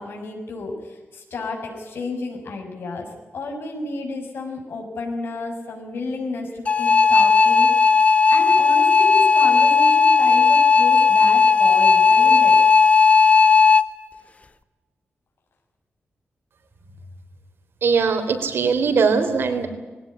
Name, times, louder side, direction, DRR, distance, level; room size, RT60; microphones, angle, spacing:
voice 1, 0.0-3.1 3.3-7.7 8.3-12.6, left 3 dB, 75° left, 1 dB, 6.1 m, -31 dB
sound 1, 6.7-13.8, left 5 dB, 35° left, 1.1 m, -15 dB
voice 2, 17.8-19.7, right 5 dB, 75° right, 6 dB, 3.8 m, -20 dB
21.0 x 17.5 x 9.8 m, 1.2 s
wide cardioid pair, 115°, 4 cm